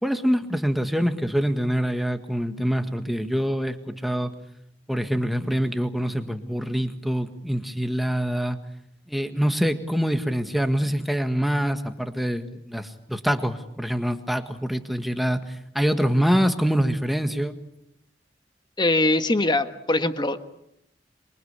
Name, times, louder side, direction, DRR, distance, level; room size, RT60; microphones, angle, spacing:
voice 1, 0.0-4.3 4.9-8.6 9.1-17.6, equal, ahead, 7 dB, 1.6 m, -25 dB
voice 2, 18.8-20.4, left 2 dB, 25° left, 10 dB, 1.4 m, -22 dB
26.5 x 23.5 x 8.3 m, 0.79 s
head